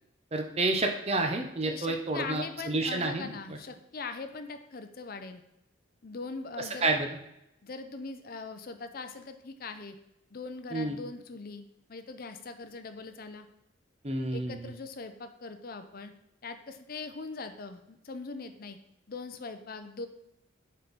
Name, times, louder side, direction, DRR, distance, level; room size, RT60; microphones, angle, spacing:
voice 1, 0.3-3.6 6.8-7.1 10.7-11.0 14.0-14.7, right 2 dB, 30° right, 4 dB, 0.7 m, -29 dB
voice 2, 1.6-5.4 6.0-6.9 7.6-10.0 10.3-13.5 14.3-16.1 16.4-18.8 19.1-20.1, left 4 dB, 45° left, 8 dB, 0.5 m, -41 dB
7.0 x 4.4 x 4.0 m, 0.83 s
head